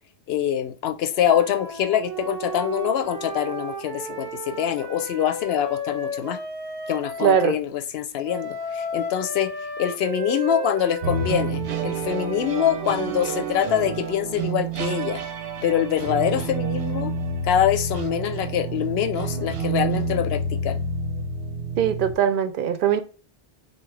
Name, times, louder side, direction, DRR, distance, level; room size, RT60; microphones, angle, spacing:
voice 1, 0.3-6.4 6.9-9.5 9.8-15.2 15.6-17.1 17.4-20.8, left 9 dB, 75° left, 0.8 m, -24 dB
Wind instrument woodwind instrument, 1.1-7.5 8.2-14.3, right 1 dB, 25° right, 0.7 m, -34 dB
voice 2, 7.2-7.6 21.8-23.0, right 8 dB, 60° right, 0.6 m, -21 dB
sound 1, 11.0-22.1, right 4 dB, 85° right, 1.0 m, -29 dB
3.8 x 2.9 x 3.1 m
omnidirectional pair, 1.1 m